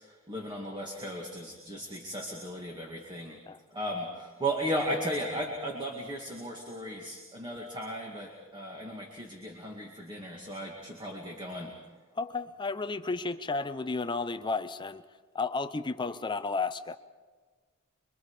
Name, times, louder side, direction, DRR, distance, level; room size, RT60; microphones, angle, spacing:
voice 1, 0.3-3.4 3.7-11.7, equal, 20° right, 0 dB, 2.2 m, -36 dB
voice 2, 12.1-15.0 15.3-17.0, left 3 dB, 20° left, 11 dB, 0.5 m, -32 dB
26.0 x 23.0 x 4.9 m, 1.4 s
head